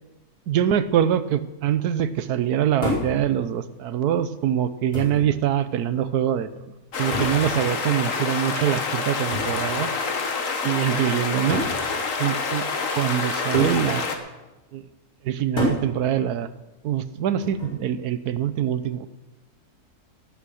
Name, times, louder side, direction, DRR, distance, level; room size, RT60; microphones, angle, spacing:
voice 1, 0.5-6.5 7.0-9.9 10.6-11.6 12.2-12.6 12.9-14.1 14.7-14.8 15.2-16.5 16.8-19.1, right 10 dB, 85° right, 13 dB, 1.3 m, -24 dB
sound 1, 2.8-3.2 4.2-4.3 4.9-5.3 7.1-7.5 9.3-9.6 10.7-10.8 11.5-11.8 13.5-13.8 15.6-15.9 17.4-17.8, left 1 dB, 80° left, 5.8 m, -27 dB
sound 2, 6.9-14.2, left 4 dB, 55° left, 1.6 m, -27 dB
18.0 x 8.3 x 6.4 m, 1.1 s
omnidirectional pair, 1.6 m